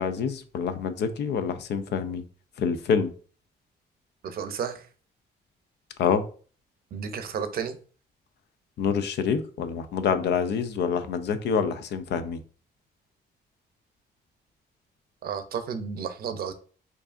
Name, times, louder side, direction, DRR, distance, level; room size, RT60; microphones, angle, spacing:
voice 1, 0.0-2.2 2.6-3.1 6.0-6.2 8.8-12.4, left 6 dB, 90° left, 0.5 m, -26 dB
voice 2, 4.2-4.9 6.9-7.8 15.2-16.5, right 7 dB, 60° right, 0.5 m, -32 dB
4.6 x 2.7 x 2.5 m
cardioid pair, 120°, 17 cm